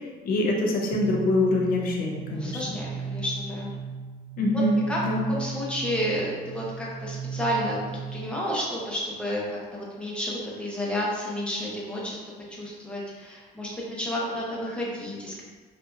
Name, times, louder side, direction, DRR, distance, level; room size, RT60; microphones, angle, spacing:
voice 1, 0.2-2.8 4.4-5.3, left 1 dB, 60° left, 0 dB, 0.7 m, -25 dB
sound 1, 0.9-8.5, right 4 dB, 20° right, 0.5 m, -37 dB
voice 2, 2.3-3.7 4.9-5.0 5.3-7.8 8.1-12.2 12.5-15.4, equal, 5° left, -5 dB, 1.1 m, -31 dB
4.7 x 2.7 x 2.8 m, 1.4 s
cardioid pair, 110°, 17 cm